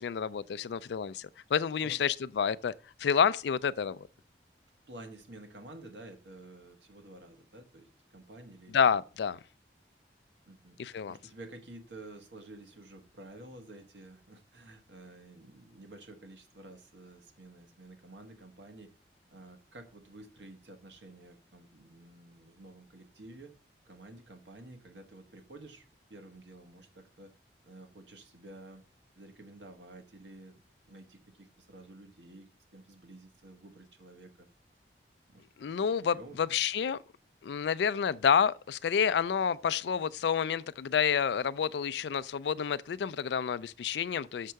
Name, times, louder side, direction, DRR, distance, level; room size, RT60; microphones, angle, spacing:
voice 1, 0.0-2.7 3.0-4.0 8.7-9.4 10.8-11.2 35.6-37.0 37.4-44.5, left 7 dB, 75° left, 0.3 m, -29 dB
voice 2, 4.9-9.0 10.5-18.9 19.3-23.5 23.8-25.8 26.1-27.3 27.6-28.8 29.1-30.6 30.8-34.5 35.3-35.4 35.8-36.6, right 2 dB, 85° right, 1.4 m, -51 dB
6.6 x 4.6 x 6.4 m
head